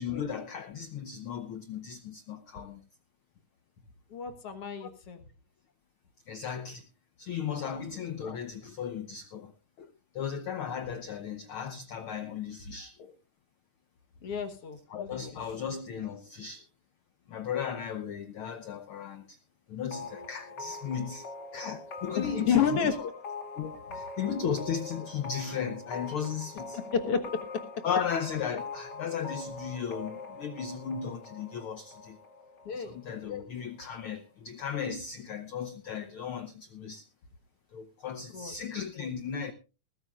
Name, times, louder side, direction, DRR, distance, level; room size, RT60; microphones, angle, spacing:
voice 1, 0.0-2.8 4.8-4.9 6.3-6.9 7.2-9.5 9.8-9.9 10.1-13.1 14.9-16.6 17.3-19.4 19.7-21.2 21.5-22.9 23.6-26.8 27.8-32.2 32.7-37.0 37.7-39.5, left 7 dB, 85° left, 1.1 m, -36 dB
voice 2, 4.1-5.2 7.6-7.8 14.2-15.2 22.2-23.1 26.7-27.2 32.7-33.0 38.3-38.5, left 7 dB, 55° left, 2.0 m, -30 dB
sound 1, 19.9-33.4, left 4 dB, 40° left, 2.1 m, -43 dB
20.0 x 14.5 x 2.4 m
omnidirectional pair, 3.5 m